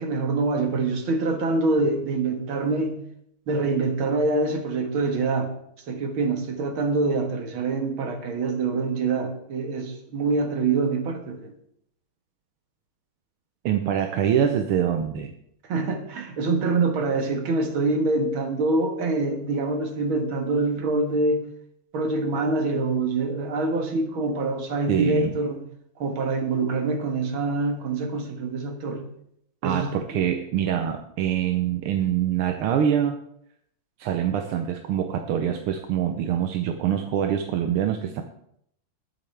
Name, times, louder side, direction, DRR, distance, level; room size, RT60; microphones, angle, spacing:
voice 1, 0.0-3.0 3.5-5.5 5.9-11.5 15.7-21.5 21.9-25.6 26.0-29.0 29.6-30.2, right 3 dB, 70° right, 4 dB, 2.4 m, -25 dB
voice 2, 13.7-15.3 24.9-25.4 29.6-33.2 34.0-38.2, right 9 dB, 85° right, 5 dB, 1.7 m, -24 dB
20.5 x 7.8 x 3.4 m, 0.72 s
omnidirectional pair, 2.3 m